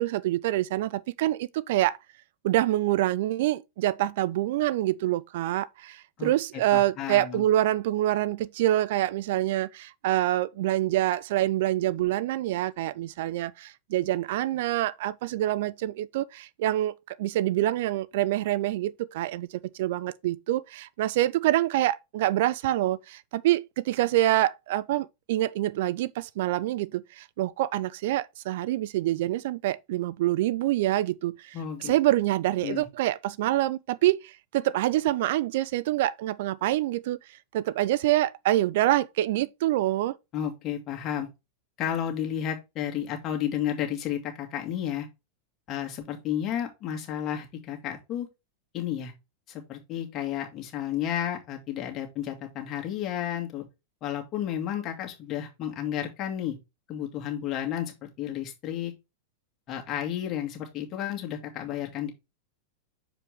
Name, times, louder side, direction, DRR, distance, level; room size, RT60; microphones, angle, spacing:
voice 1, 0.0-2.0 2.4-31.6 31.8-37.2 37.5-40.2, right 14 dB, 60° right, 0.4 m, -26 dB
voice 2, 6.7-7.4 31.5-31.9 32.6-32.9 40.3-41.3 41.8-45.1 45.7-48.3 48.7-49.1 49.5-53.7 54.0-56.6 56.9-58.9 59.7-62.1, left 10 dB, 40° left, 2.0 m, -32 dB
6.5 x 4.9 x 3.4 m
hypercardioid pair, 95°, 0 cm